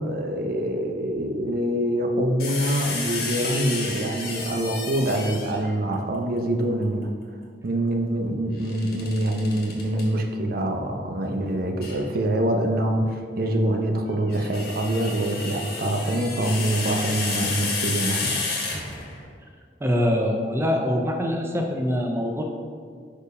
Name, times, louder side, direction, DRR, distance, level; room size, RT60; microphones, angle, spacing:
voice 1, 0.0-7.1 7.6-18.4, right 1 dB, 60° right, 3 dB, 0.6 m, -25 dB
sound 1, 2.4-5.7 8.6-10.0 11.8-12.0 14.1-19.3, left 3 dB, 60° left, 1.4 m, -31 dB
voice 2, 19.8-22.4, equal, 15° right, 2 dB, 0.5 m, -24 dB
5.0 x 4.5 x 5.3 m, 2.1 s
head